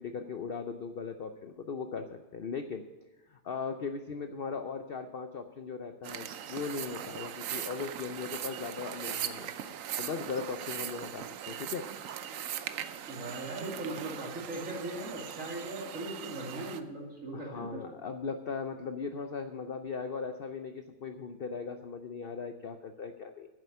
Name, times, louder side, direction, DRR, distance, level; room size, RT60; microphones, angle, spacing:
voice 1, 0.0-2.8 3.3-9.5 10.0-11.9 17.3-23.5, left 5 dB, 70° left, 7 dB, 0.5 m, -38 dB
sound 1, 6.0-16.8, right 10 dB, 65° right, 0.9 m, -40 dB
voice 2, 13.1-17.8, right 2 dB, 50° right, -2 dB, 3.0 m, -39 dB
9.9 x 7.8 x 8.5 m, 1.1 s
omnidirectional pair, 1.8 m